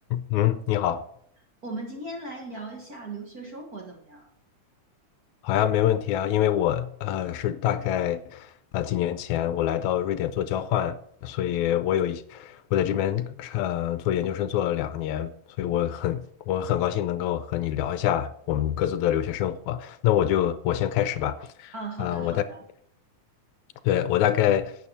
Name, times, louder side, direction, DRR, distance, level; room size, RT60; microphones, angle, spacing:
voice 1, 0.1-1.0 5.4-15.3 15.6-21.7 22.0-22.4 23.8-24.8, left 11 dB, 80° left, 1.9 m, -26 dB
voice 2, 1.6-4.3 21.7-22.6, right 2 dB, 35° right, 2.0 m, -38 dB
11.0 x 9.1 x 4.1 m
omnidirectional pair, 3.5 m